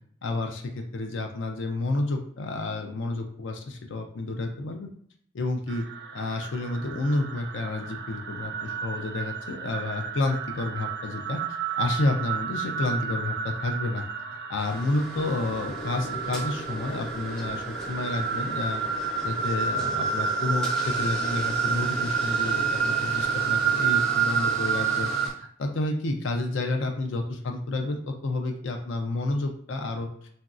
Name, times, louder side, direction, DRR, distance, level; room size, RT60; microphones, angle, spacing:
voice 1, 0.2-4.9 5.3-5.8 6.1-14.0 14.5-18.8 19.2-25.1 25.4-30.1, left 2 dB, 70° left, 3 dB, 0.4 m, -30 dB
sound 1, 5.7-25.3, right 6 dB, 60° right, 0.3 m, -30 dB
sound 2, 14.6-25.3, equal, 5° left, 0.5 m, -41 dB
sound 3, 15.1-25.2, right 1 dB, 40° left, 0.7 m, -41 dB
3.0 x 2.6 x 2.4 m, 0.62 s
head